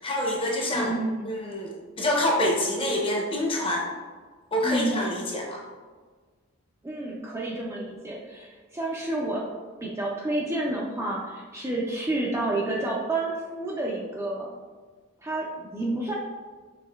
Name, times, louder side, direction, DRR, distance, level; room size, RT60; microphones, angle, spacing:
voice 1, 0.0-0.9 1.2-3.9 4.5-5.6, left 1 dB, 25° left, -2 dB, 0.6 m, -26 dB
voice 2, 0.7-1.4 4.6-5.0 6.8-9.4 9.8-14.5 15.2-16.1, right 2 dB, 15° right, -4 dB, 0.3 m, -29 dB
5.4 x 3.0 x 2.2 m, 1.4 s
head